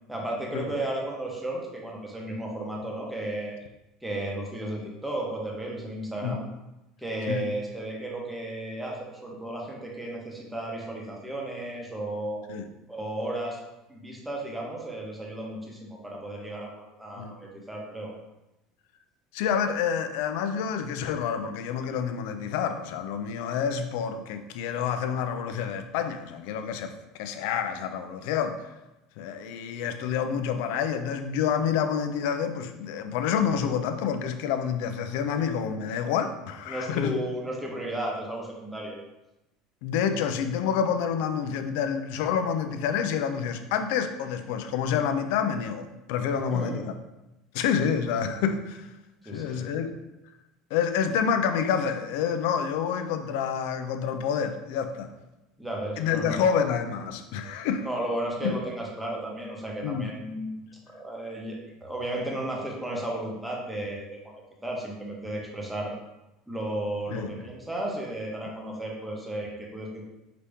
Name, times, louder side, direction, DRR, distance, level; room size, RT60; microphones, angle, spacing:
voice 1, 0.1-3.5 4.0-6.5 7.0-12.4 12.9-13.6 13.9-18.1 35.3-35.4 36.7-39.0 46.5-46.8 49.2-49.6 55.6-56.4 57.8-64.3 64.6-65.9 66.5-70.0, right 1 dB, 5° right, -2 dB, 0.9 m, -34 dB
voice 2, 19.3-26.9 27.2-28.6 29.2-37.2 39.8-46.9 47.5-48.9 49.2-50.0 50.7-55.1 56.0-57.9 58.4-58.6 59.8-60.1 67.1-67.4, left 7 dB, 80° left, 8 dB, 0.4 m, -28 dB
5.0 x 2.8 x 3.4 m, 0.97 s
cardioid pair, 140°, 0 cm